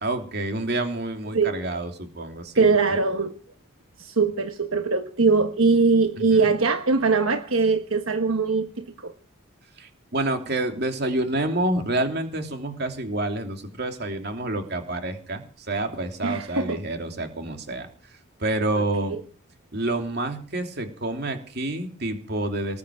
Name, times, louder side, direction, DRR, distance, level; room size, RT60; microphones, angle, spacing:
voice 1, 0.0-3.0 6.2-6.5 9.8-17.9 18.4-19.1 19.7-22.8, right 2 dB, 50° right, 3.0 m, -28 dB
voice 2, 2.5-3.4 4.0-9.1 16.2-16.8 19.0-19.2, right 4 dB, 75° right, 1.2 m, -21 dB
20.0 x 8.5 x 7.6 m
head